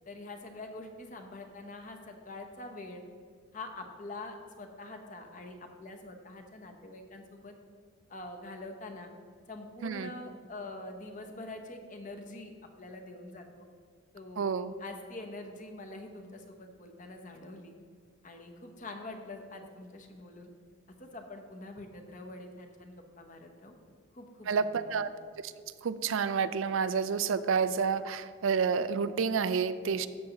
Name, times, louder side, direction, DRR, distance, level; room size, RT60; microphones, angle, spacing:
voice 1, 0.1-3.0 3.5-7.5 8.1-9.1 9.5-12.5 12.8-13.7 14.1-17.7 18.2-20.5 21.0-23.7 24.1-25.0, left 2 dB, 40° left, 4 dB, 0.9 m, -45 dB
voice 2, 14.4-14.7 24.5-25.1 25.4-25.5 25.8-30.1, right 6 dB, 75° right, 13 dB, 0.4 m, -29 dB
12.5 x 7.6 x 3.0 m, 2.1 s
head